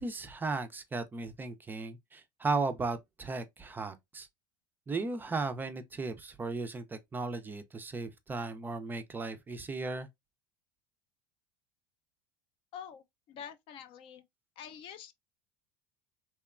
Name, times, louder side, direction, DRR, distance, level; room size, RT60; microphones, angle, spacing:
voice 1, 0.0-4.3 4.9-10.1, right 3 dB, 15° right, 0.4 m, -36 dB
voice 2, 12.7-14.2 14.6-15.2, left 8 dB, 50° left, 0.4 m, -47 dB
2.9 x 2.1 x 2.3 m
supercardioid pair, 110°, 12 cm